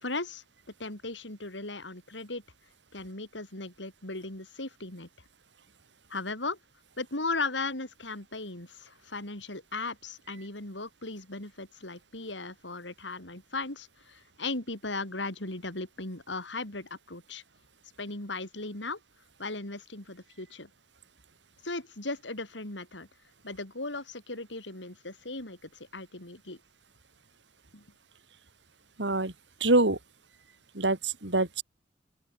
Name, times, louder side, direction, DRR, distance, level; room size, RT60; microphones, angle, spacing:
voice 1, 0.0-0.4 0.8-2.4 2.9-5.1 6.1-6.6 7.0-17.4 18.0-19.0 19.4-20.7 21.6-23.1 23.4-26.6 27.7-27.8, left 3 dB, 80° left, 5.1 m, -37 dB
voice 2, 29.0-29.3 29.6-30.0 30.7-31.6, right 2 dB, 70° right, 3.3 m, -25 dB
open air
head